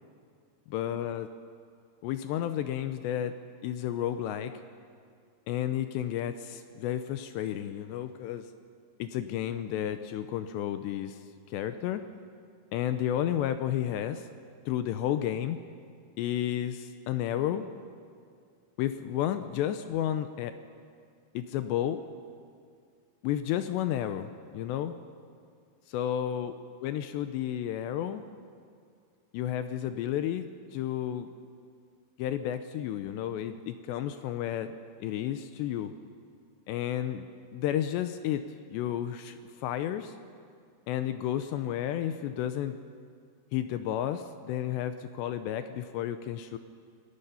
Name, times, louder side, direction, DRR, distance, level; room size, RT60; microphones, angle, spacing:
voice 1, 0.7-1.3 2.0-3.4 3.6-4.5 5.5-8.5 9.0-11.2 11.5-12.0 12.7-14.3 14.7-15.6 16.2-17.7 18.8-20.5 21.3-22.0 23.2-25.0 25.9-26.5 26.8-28.2 29.3-31.3 32.2-34.7 35.0-35.9 36.7-37.3 37.5-38.4 38.7-40.1 40.9-42.8 43.5-46.6, left 11 dB, 80° left, 10 dB, 2.6 m, -32 dB
28.5 x 20.5 x 5.7 m, 2.2 s
omnidirectional pair, 5.5 m